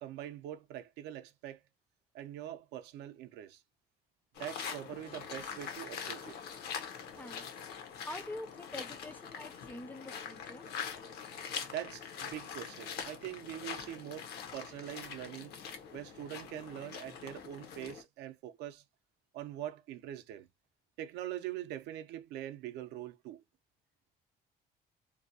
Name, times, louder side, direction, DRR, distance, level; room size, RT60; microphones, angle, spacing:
voice 1, 0.0-1.6 2.1-3.6 4.4-6.4 11.7-15.5 15.9-18.8 19.3-20.5 21.0-23.4, right 12 dB, 80° right, 0.4 m, -43 dB
sound 1, 4.3-18.0, left 7 dB, 70° left, 0.7 m, -43 dB
voice 2, 7.2-7.5 8.1-10.7, left 1 dB, 10° left, 0.4 m, -45 dB
2.6 x 2.0 x 2.6 m
cardioid pair, 110°, 17 cm